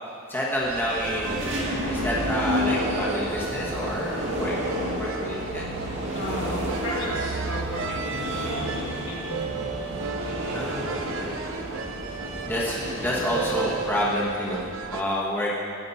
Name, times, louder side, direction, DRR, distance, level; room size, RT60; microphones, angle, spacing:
voice 1, 0.3-4.5 4.9-5.7 10.5-11.3 12.4-15.6, left 1 dB, 10° left, -6 dB, 1.2 m, -29 dB
sound 1, 0.6-13.9, equal, 60° right, 1.9 m, -31 dB
sound 2, 0.6-15.0, right 4 dB, 80° right, 0.7 m, -34 dB
voice 2, 6.1-9.8 13.2-13.3, left 1 dB, 75° left, -5 dB, 3.0 m, -36 dB
12.5 x 8.7 x 4.1 m, 2.4 s
head